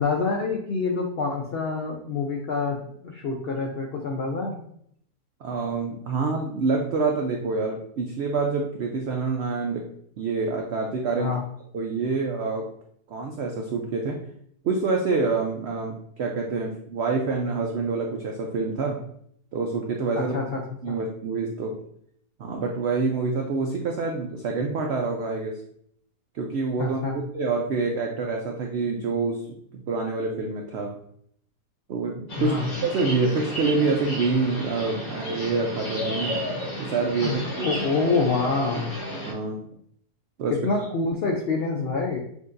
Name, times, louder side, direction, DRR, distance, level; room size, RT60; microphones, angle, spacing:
voice 1, 0.0-4.6 11.2-11.4 20.1-21.0 26.8-27.2 32.4-32.7 37.2-37.4 37.6-38.9 40.6-42.2, left 4 dB, 80° left, 1 dB, 0.5 m, -26 dB
voice 2, 5.4-9.8 10.2-11.4 11.7-12.6 13.1-14.2 14.6-19.0 19.5-20.4 20.8-21.7 22.4-25.6 26.3-29.4 29.9-30.9 31.9-32.6 32.8-36.4 36.8-37.7 39.2-39.7 40.4-40.7, right 4 dB, 80° right, 1 dB, 0.5 m, -26 dB
sound 1, 32.3-39.3, equal, 65° left, 1.7 m, -32 dB
6.2 x 2.6 x 2.5 m, 0.68 s
omnidirectional pair, 1.7 m